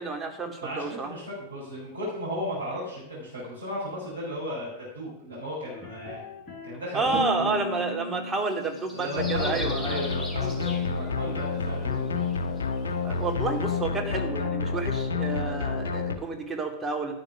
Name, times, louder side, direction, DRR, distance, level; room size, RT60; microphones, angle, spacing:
voice 1, 0.0-1.1 6.9-10.1 13.0-17.1, right 3 dB, 15° right, 2 dB, 2.9 m, -30 dB
voice 2, 0.6-6.2 6.6-7.5 8.9-12.2, equal, 70° right, -8 dB, 6.4 m, -35 dB
sound 1, 5.7-6.7 7.0-10.0, left 2 dB, 25° left, 6.8 m, -37 dB
sound 2, 8.5-11.5 12.1-13.6, left 1 dB, 5° left, 2.8 m, -41 dB
sound 3, 9.2-16.2, left 5 dB, 65° left, 1.5 m, -29 dB
12.5 x 10.5 x 6.1 m, 0.77 s
figure-of-eight pair, 90°, 0 cm